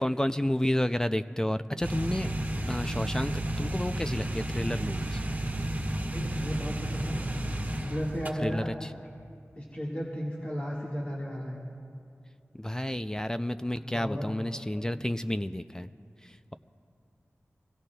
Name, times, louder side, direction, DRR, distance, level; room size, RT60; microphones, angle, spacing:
voice 1, 0.0-2.3 2.7-5.2 8.4-8.9 12.5-15.9 16.2-16.5, left 1 dB, 15° left, 11 dB, 0.3 m, -31 dB
sound 1, 1.8-8.3, right 1 dB, 35° right, 1.4 m, -32 dB
voice 2, 6.1-7.2 7.8-8.9 9.5-11.6 13.7-14.3 14.9-15.0, equal, 30° left, -5 dB, 1.7 m, -35 dB
24.0 x 17.5 x 2.3 m, 2.4 s
wide cardioid pair, 70°, 5 cm